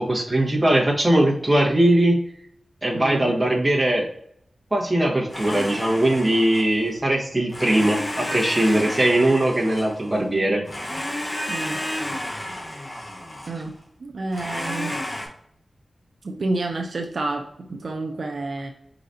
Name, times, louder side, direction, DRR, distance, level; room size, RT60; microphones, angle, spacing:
voice 1, 0.0-2.2 2.8-4.1 4.7-10.6, right 1 dB, 15° right, -3 dB, 1.3 m, -20 dB
voice 2, 2.9-3.3 10.1-10.7 11.5-11.8 13.5-14.9 16.2-18.7, right 2 dB, 65° right, 2 dB, 0.5 m, -30 dB
Domestic sounds home sounds, 5.3-6.9 7.5-10.3 10.7-13.7 14.3-15.3, left 1 dB, 45° left, 1.6 m, -31 dB
5.0 x 3.9 x 2.7 m, 0.69 s
wide cardioid pair, 110°, 0 cm